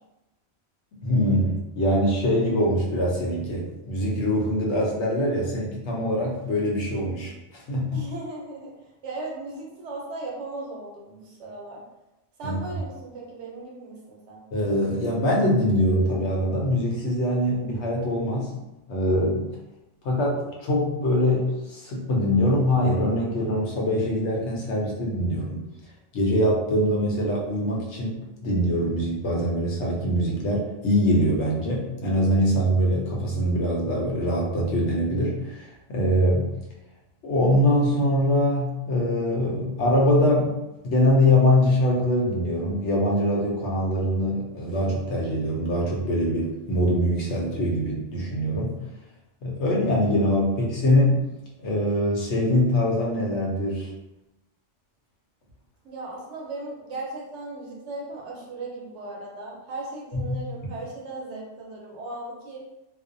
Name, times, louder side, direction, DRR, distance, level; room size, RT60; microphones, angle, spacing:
voice 1, 1.0-7.3 7.7-8.0 12.4-12.6 14.5-18.5 18.9-19.5 20.0-25.6 26.1-36.5 37.2-40.5 40.8-48.7 49.4-51.2 51.6-53.9 60.1-60.4, left 1 dB, 70° left, -2 dB, 0.9 m, -23 dB
voice 2, 7.9-11.8 12.4-14.4 55.8-62.6, right 2 dB, 75° right, -3 dB, 1.0 m, -37 dB
2.5 x 2.0 x 2.5 m, 0.96 s
omnidirectional pair, 1.2 m